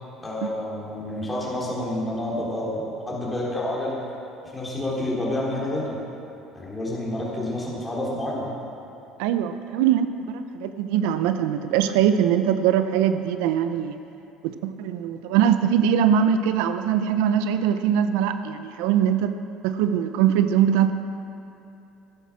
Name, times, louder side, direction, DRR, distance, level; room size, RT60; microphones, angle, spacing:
voice 1, 0.2-4.0 4.5-6.0 6.5-8.5, left 1 dB, 10° left, -5 dB, 3.6 m, -29 dB
voice 2, 9.2-13.9 14.4-19.3 19.6-20.9, right 9 dB, 85° right, 10 dB, 0.6 m, -22 dB
14.0 x 10.5 x 6.2 m, 2.8 s
cardioid pair, 120°, 0 cm